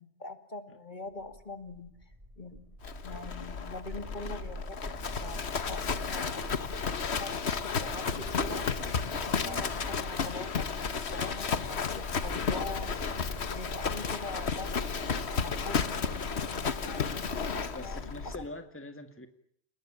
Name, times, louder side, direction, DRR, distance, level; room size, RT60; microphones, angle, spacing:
voice 1, 0.0-2.7 3.0-6.6 7.2-13.1 13.5-17.0 17.5-18.5, left 2 dB, 35° left, 9 dB, 2.5 m, -44 dB
sound 1, 1.1-18.5, equal, 25° right, 3.0 m, -46 dB
Livestock farm animals working animals, 2.8-18.4, left 5 dB, 60° left, 1.5 m, -33 dB
voice 2, 9.4-9.7 17.7-19.3, left 1 dB, 10° left, 8 dB, 2.0 m, -43 dB
30.0 x 20.0 x 8.8 m, 0.69 s
omnidirectional pair, 1.3 m